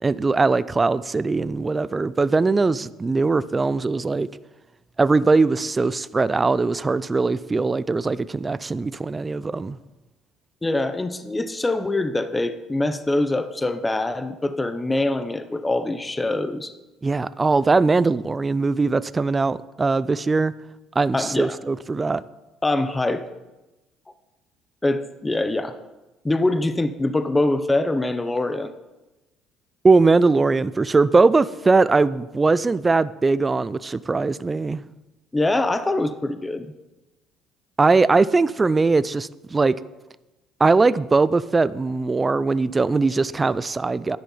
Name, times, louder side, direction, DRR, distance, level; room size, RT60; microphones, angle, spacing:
voice 1, 0.0-4.3 5.0-9.8 17.0-20.5 21.0-22.2 29.8-34.8 37.8-39.8 40.6-44.2, right 3 dB, 20° right, 17 dB, 0.4 m, -20 dB
voice 2, 10.6-16.7 21.1-21.6 22.6-23.2 24.8-25.7 26.2-28.7 35.3-36.7, left 2 dB, 15° left, 11 dB, 0.8 m, -24 dB
10.5 x 10.5 x 5.6 m, 1.0 s
cardioid pair, 105°, 0 cm